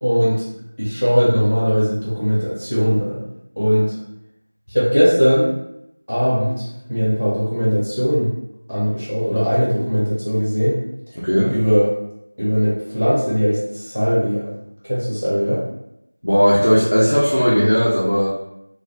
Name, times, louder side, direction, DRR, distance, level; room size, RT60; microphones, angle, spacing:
voice 1, 0.0-0.4 0.8-3.2 3.6-3.9 4.7-5.5 6.1-8.3 8.7-10.8 11.5-11.9 12.4-14.5 14.8-15.6, equal, 5° right, -20 dB, 0.7 m, -19 dB
voice 2, 11.2-11.6 16.2-18.3, equal, 30° left, -8 dB, 0.4 m, -16 dB
2.3 x 2.3 x 3.3 m, 0.83 s
figure-of-eight pair, 180°, 0 cm